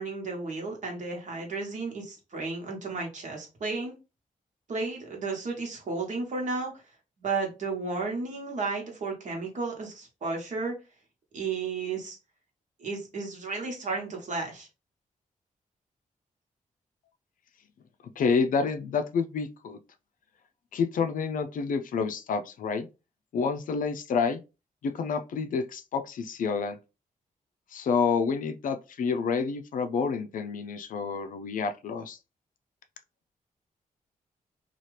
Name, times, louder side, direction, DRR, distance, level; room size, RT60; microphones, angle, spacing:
voice 1, 0.0-3.9 4.7-6.7 7.2-10.7 11.3-12.2 12.8-14.7, right 4 dB, 60° right, 1.2 m, -33 dB
voice 2, 18.2-19.8 20.7-22.9 23.3-24.4 24.8-26.8 27.7-32.2, left 5 dB, 70° left, 0.4 m, -28 dB
2.8 x 2.4 x 3.1 m
wide cardioid pair, 125°, 14 cm